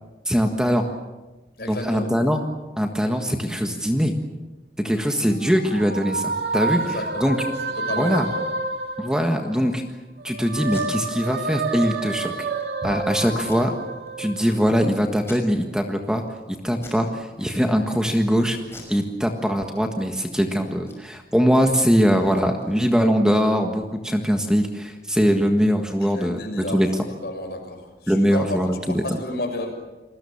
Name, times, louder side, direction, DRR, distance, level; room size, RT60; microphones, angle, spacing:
voice 1, 0.2-0.9 1.7-2.4 2.8-4.1 4.8-7.4 8.0-8.3 9.0-9.8 10.2-12.3 12.8-13.7 14.2-16.2 16.5-18.6 18.9-26.9 28.1-29.0, equal, 5° right, 4 dB, 1.6 m, -22 dB
voice 2, 1.6-2.1 6.6-7.4 7.8-8.4 12.8-12.9 26.0-26.8 27.2-29.7, left 1 dB, 60° left, 4 dB, 6.4 m, -31 dB
sound 1, 4.8-9.8 10.2-14.9, right 3 dB, 65° right, 2.6 m, -29 dB
Packing tape duct tape, 10.6-10.9 11.3-11.4 11.7-11.8 12.3-12.6 13.3-14.1 14.5-14.6 15.2-15.8 16.2-16.4 16.8-17.1 17.4-18.0 18.6-19.8 20.1-20.2 20.5-23.1, left 2 dB, 15° left, 6.2 m, -46 dB
29.0 x 20.5 x 7.2 m, 1.1 s
head